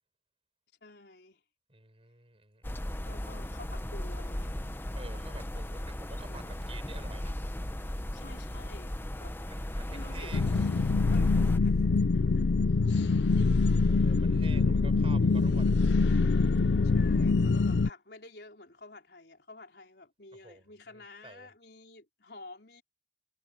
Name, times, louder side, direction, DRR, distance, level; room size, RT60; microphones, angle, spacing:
voice 1, 0.8-1.4 3.0-4.6 6.2-6.6 8.1-9.4 9.9-10.7 11.1-11.8 12.1-12.5 13.0-13.7 16.8-22.8, left 2 dB, 65° left, 4.4 m, -50 dB
voice 2, 1.7-3.0 4.9-7.4 9.5-10.5 13.9-15.8 20.3-21.5, right 3 dB, 35° right, 5.3 m, -50 dB
sound 1, 2.6-11.6, left 1 dB, 10° left, 0.8 m, -37 dB
sound 2, 10.3-17.9, left 3 dB, 85° left, 0.5 m, -24 dB
head